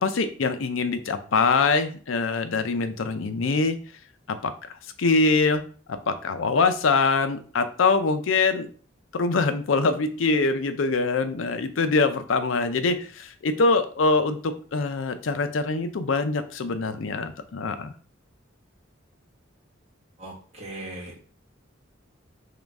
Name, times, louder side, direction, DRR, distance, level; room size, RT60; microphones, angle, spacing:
voice 1, 0.0-3.8 4.3-4.5 5.0-5.6 5.9-8.7 9.1-17.9, left 3 dB, 80° left, 10 dB, 0.5 m, -24 dB
voice 2, 20.2-21.2, right 1 dB, 35° right, -5 dB, 1.4 m, -38 dB
3.8 x 3.0 x 3.5 m, 0.42 s
head